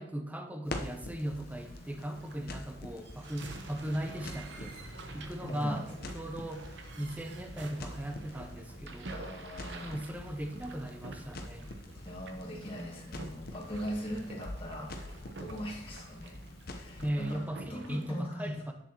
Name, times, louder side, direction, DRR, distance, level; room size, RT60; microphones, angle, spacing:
voice 1, 0.0-4.8 5.1-5.9 6.1-6.7 7.0-9.2 9.8-11.7 17.0-18.7, right 1 dB, 10° right, 5 dB, 0.6 m, -38 dB
Crackle, 0.6-17.1, left 1 dB, 55° left, 0.8 m, -46 dB
sound 1, 1.3-18.2, right 2 dB, 70° right, 0.8 m, -48 dB
voice 2, 5.4-5.9 9.1-10.0 11.9-16.3 16.7-17.4 17.7-18.6, equal, 30° left, -4 dB, 1.5 m, -40 dB
8.0 x 7.1 x 2.9 m, 0.80 s
head